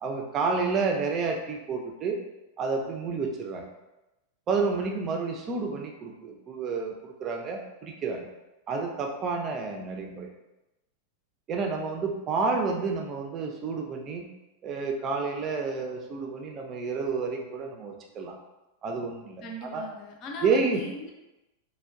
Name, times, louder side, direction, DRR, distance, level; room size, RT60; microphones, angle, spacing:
voice 1, 0.0-2.2 2.6-3.6 4.5-8.3 8.7-10.3 11.5-14.3 14.6-18.3 18.8-19.8 20.4-20.8, right 4 dB, 30° right, 2 dB, 0.5 m, -30 dB
voice 2, 19.4-21.1, left 1 dB, 35° left, 0 dB, 0.6 m, -39 dB
4.3 x 2.2 x 2.4 m, 0.98 s
figure-of-eight pair, 90°, 0 cm